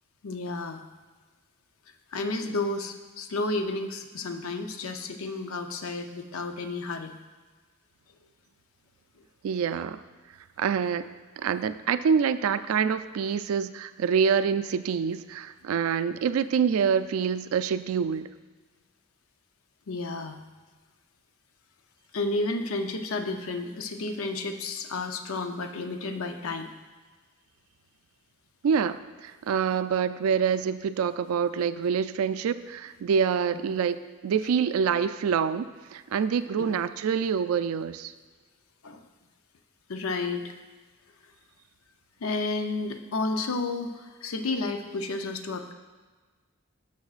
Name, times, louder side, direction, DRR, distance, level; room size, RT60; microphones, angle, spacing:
voice 1, 0.2-0.8 2.1-7.1 19.9-20.4 22.1-26.7 33.5-33.6 36.6-36.8 38.8-39.0 39.9-40.5 42.2-45.7, left 3 dB, 85° left, 6 dB, 0.6 m, -31 dB
voice 2, 9.4-10.0 10.6-11.1 11.4-18.3 28.6-38.1, right 6 dB, 90° right, 13 dB, 0.3 m, -26 dB
12.0 x 5.9 x 2.4 m, 1.4 s
head